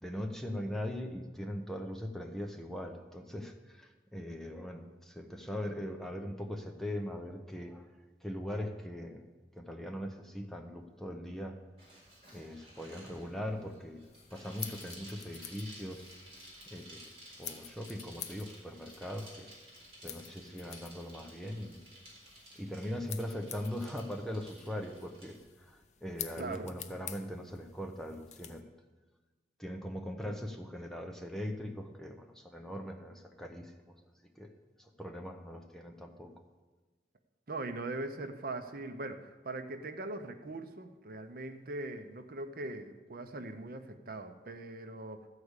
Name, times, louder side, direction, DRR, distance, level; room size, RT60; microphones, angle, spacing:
voice 1, 0.0-7.9 8.2-9.3 9.6-11.6 12.3-16.0 16.7-17.0 17.4-19.5 20.0-21.8 22.5-28.7 29.6-33.9 34.4-34.5 34.8-36.3, equal, ahead, 4 dB, 0.7 m, -40 dB
Bicycle, 11.8-25.4, equal, 30° right, 3.8 m, -54 dB
sound 1, 14.0-28.6, left 10 dB, 40° left, 0.6 m, -49 dB
voice 2, 26.4-26.7 37.5-45.3, right 2 dB, 55° right, 8 dB, 0.8 m, -41 dB
13.5 x 4.9 x 8.1 m, 1.3 s
head